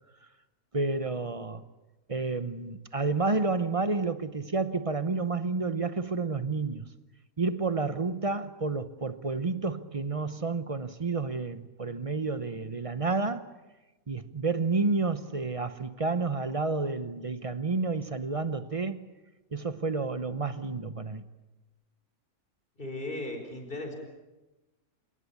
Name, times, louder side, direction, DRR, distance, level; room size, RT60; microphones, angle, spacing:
voice 1, 0.7-1.6 2.1-6.8 7.4-13.5 14.1-19.0 19.5-21.2, right 3 dB, 30° right, 0.7 m, -30 dB
voice 2, 22.8-23.9, left 2 dB, 35° left, 4.8 m, -36 dB
28.5 x 18.5 x 8.5 m
omnidirectional pair, 1.5 m